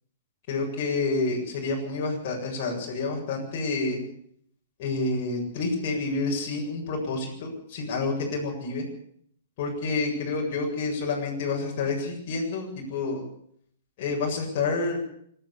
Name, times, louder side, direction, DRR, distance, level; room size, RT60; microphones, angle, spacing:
voice 1, 0.5-4.0 4.8-8.9 9.6-13.2 14.0-15.0, left 3 dB, 45° left, -2 dB, 7.8 m, -28 dB
26.0 x 12.5 x 8.5 m, 0.67 s
figure-of-eight pair, 115°, 0 cm